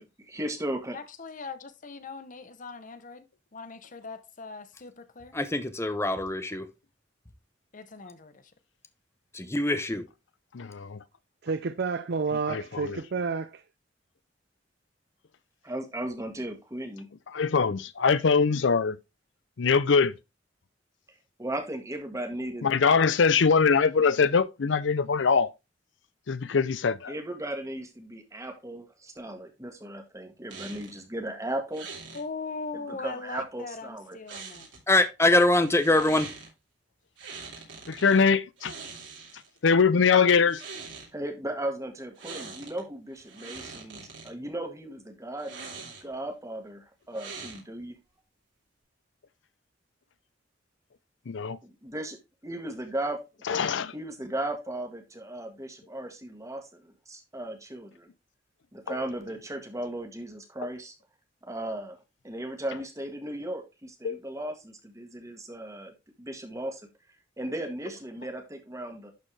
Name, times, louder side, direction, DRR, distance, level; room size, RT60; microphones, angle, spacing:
voice 1, 0.0-1.0 15.6-17.1 21.4-22.7 27.1-31.9 32.7-34.2 41.1-45.5 46.0-48.0 51.8-52.2 52.4-53.2 53.9-58.1 58.7-60.9 61.5-62.0 62.2-66.8 67.4-69.1, right 1 dB, 15° right, 1.6 m, -36 dB
voice 2, 0.9-3.3 3.5-5.3 7.7-8.5 32.1-34.7 36.0-36.3, left 4 dB, 45° left, 0.9 m, -40 dB
voice 3, 5.3-6.7 9.3-10.0 34.9-36.3, left 2 dB, 15° left, 0.7 m, -23 dB
voice 4, 10.5-11.0 12.5-12.6 12.9-13.0 17.3-19.0 19.6-20.1 22.6-25.5 26.3-27.1 37.9-38.7 39.6-40.6 51.3-51.6 53.5-53.9 64.0-64.2, left 5 dB, 80° left, 0.5 m, -22 dB
voice 5, 11.4-13.6, right 4 dB, 60° right, 0.5 m, -30 dB
sound 1, 30.5-31.0 31.7-32.2 34.3-35.0 35.6-36.5 37.2-38.2 38.6-39.6 40.4-41.1 42.2-42.8 43.2-44.3 45.4-46.2 47.1-47.9, right 4 dB, 80° right, 3.3 m, -43 dB
11.5 x 4.4 x 3.3 m
head